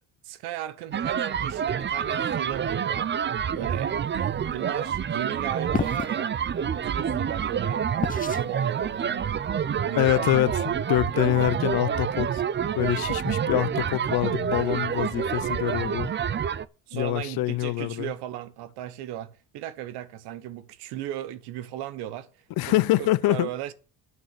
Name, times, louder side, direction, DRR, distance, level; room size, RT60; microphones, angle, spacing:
voice 1, 0.2-3.1 3.5-6.3 6.7-9.4 9.9-10.7 16.9-22.3 22.7-23.7, right 12 dB, 80° right, 1.2 m, -36 dB
sound 1, 0.9-16.6, right 8 dB, 30° right, 0.6 m, -28 dB
sound 2, 5.7-6.1 8.0-8.5, left 6 dB, 20° left, 0.8 m, -29 dB
voice 2, 10.0-10.6 10.9-12.4 12.7-16.1 16.9-18.1 22.6-23.5, left 17 dB, 70° left, 0.8 m, -25 dB
9.3 x 6.4 x 8.3 m
supercardioid pair, 90°, 38 cm